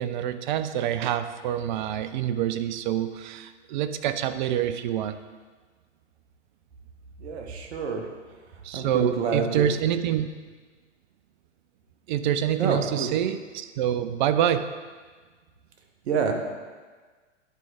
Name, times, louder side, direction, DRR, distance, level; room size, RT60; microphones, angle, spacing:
voice 1, 0.0-5.2 8.6-10.3 12.1-14.7, right 10 dB, 40° right, 11 dB, 0.4 m, -26 dB
voice 2, 7.2-8.1 8.5-9.7 12.6-13.1 16.0-16.3, right 5 dB, 60° right, 4 dB, 1.2 m, -28 dB
9.8 x 4.6 x 3.9 m, 1.4 s
hypercardioid pair, 110°, 37 cm